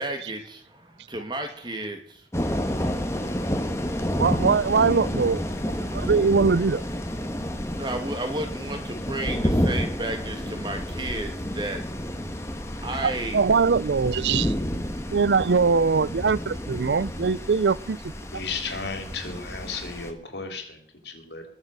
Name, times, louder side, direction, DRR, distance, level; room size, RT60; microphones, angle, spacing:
voice 1, 0.0-2.3 7.7-11.8 12.8-13.6, right 1 dB, 25° right, 2.5 m, -33 dB
sound 1, 2.3-20.1, equal, 15° left, 1.6 m, -30 dB
voice 2, 4.2-5.4 5.9-6.8 13.0-14.5 15.1-18.1, right 5 dB, 80° right, 0.5 m, -22 dB
voice 3, 18.3-21.4, left 4 dB, 80° left, 3.3 m, -34 dB
20.5 x 7.3 x 6.8 m
head